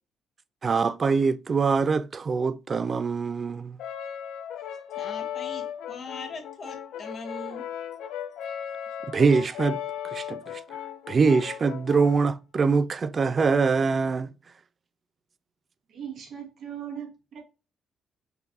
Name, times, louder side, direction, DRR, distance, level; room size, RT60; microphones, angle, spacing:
voice 1, 0.6-3.8 9.1-9.8 10.0-10.6 11.1-14.3, right 4 dB, 40° right, 0.3 m, -23 dB
Brass instrument, 3.8-12.4, left 9 dB, 85° left, 0.5 m, -36 dB
voice 2, 4.9-7.6, left 3 dB, 50° left, 1.2 m, -40 dB
voice 3, 15.9-17.4, right 9 dB, 70° right, 1.4 m, -39 dB
3.8 x 2.5 x 2.7 m
cardioid pair, 90°, 0 cm